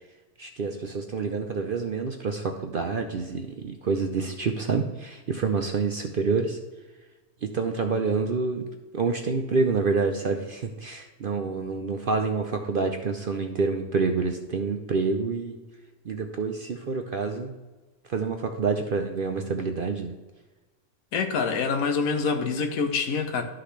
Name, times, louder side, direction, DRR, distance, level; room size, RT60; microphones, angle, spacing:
voice 1, 0.4-6.6 7.4-8.6 8.9-15.6 16.1-17.5 18.1-20.1, right 4 dB, 60° right, 4 dB, 0.6 m, -27 dB
voice 2, 21.1-23.4, left 5 dB, 70° left, 7 dB, 1.3 m, -26 dB
12.0 x 5.8 x 3.2 m, 1.2 s
omnidirectional pair, 1.6 m